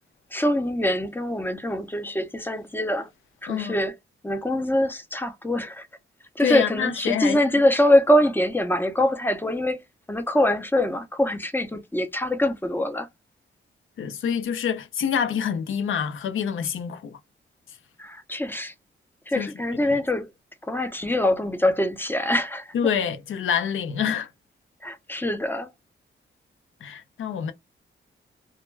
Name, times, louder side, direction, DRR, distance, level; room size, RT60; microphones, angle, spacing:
voice 1, 0.3-3.1 3.4-4.0 4.2-5.9 6.4-9.8 10.1-13.1 18.0-18.7 19.3-20.3 20.6-22.9 24.8-25.7, left 1 dB, 10° left, 0.5 m, -24 dB
voice 2, 3.5-3.8 6.4-7.4 14.0-17.2 19.4-20.0 22.7-24.3 26.8-27.5, left 8 dB, 75° left, 0.5 m, -27 dB
2.2 x 2.1 x 3.1 m
cardioid pair, 100°, 20 cm